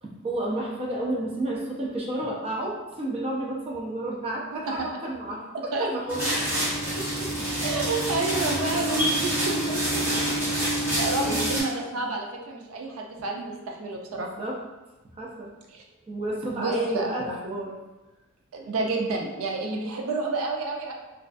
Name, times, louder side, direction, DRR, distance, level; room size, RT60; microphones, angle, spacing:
voice 1, 0.0-6.2 6.9-7.3 11.0-11.5 14.1-14.6 15.2-15.5 16.1-17.7, right 1 dB, 30° right, -3 dB, 0.4 m, -31 dB
voice 2, 4.5-4.9 5.5-5.9 7.6-10.0 10.6-14.3 15.7-15.8 16.6-17.1 18.5-20.9, right 3 dB, 85° right, 1 dB, 0.4 m, -30 dB
sound 1, 6.1-11.6, right 1 dB, 10° right, 0.9 m, -27 dB
2.3 x 2.2 x 2.4 m, 1.1 s
head